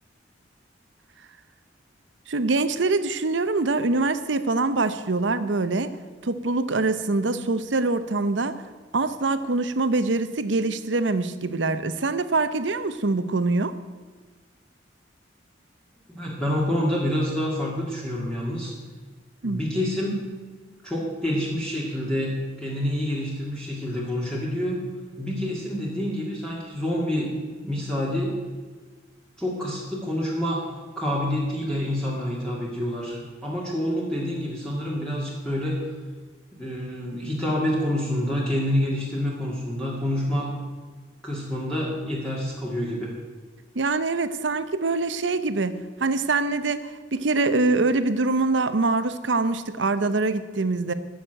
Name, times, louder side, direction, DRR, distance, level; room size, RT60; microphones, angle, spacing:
voice 1, 2.3-5.9 6.2-8.6 8.9-13.7 19.4-19.6 43.8-50.9, right 3 dB, 80° right, 12 dB, 0.8 m, -24 dB
voice 2, 16.1-18.7 19.4-20.2 20.8-24.9 25.2-27.3 27.6-28.4 29.4-30.6 31.0-35.9 36.5-40.5 41.2-43.1, equal, 5° left, -5 dB, 2.2 m, -27 dB
13.5 x 6.5 x 9.0 m, 1.4 s
head